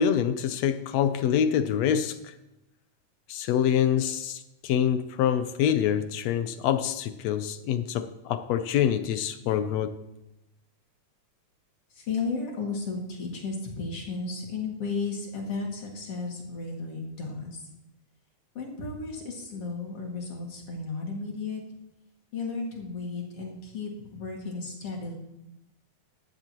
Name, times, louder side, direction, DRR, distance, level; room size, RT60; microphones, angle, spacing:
voice 1, 0.0-2.1 3.3-9.9, left 9 dB, 75° left, 10 dB, 1.7 m, -26 dB
voice 2, 12.0-17.6 18.5-21.6 22.3-25.2, left 4 dB, 50° left, -1 dB, 3.1 m, -34 dB
15.5 x 11.5 x 3.0 m, 0.91 s
omnidirectional pair, 3.5 m